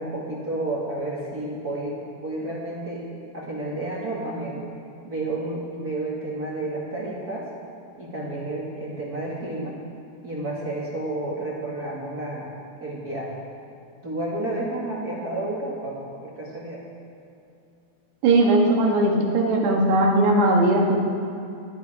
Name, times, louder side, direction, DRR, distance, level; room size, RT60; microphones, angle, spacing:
voice 1, 0.0-3.0 3.3-4.6 5.0-7.5 8.0-9.8 10.2-12.5 12.8-13.3 14.0-16.0 16.2-16.8, right 2 dB, 40° right, -5 dB, 1.3 m, -31 dB
voice 2, 18.2-21.0, right 2 dB, 80° right, -1 dB, 3.8 m, -19 dB
19.0 x 11.0 x 4.8 m, 2.6 s
omnidirectional pair, 4.7 m